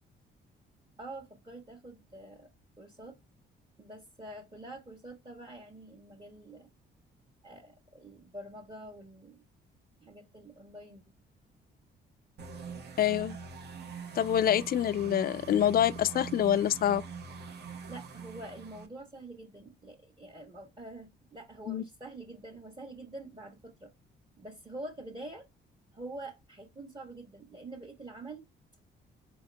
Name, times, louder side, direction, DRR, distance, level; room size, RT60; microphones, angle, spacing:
voice 1, 1.0-2.5 2.8-3.2 3.8-6.7 7.4-9.4 10.0-11.0 17.9-23.9 24.4-25.4 25.9-28.4, right 2 dB, 25° right, 1.2 m, -46 dB
sound 1, 12.4-18.9, right 5 dB, 55° right, 0.9 m, -43 dB
voice 2, 13.0-13.4 14.2-17.0 21.7-21.8, left 10 dB, 50° left, 0.4 m, -26 dB
4.1 x 2.8 x 3.3 m
cardioid pair, 90°, 20 cm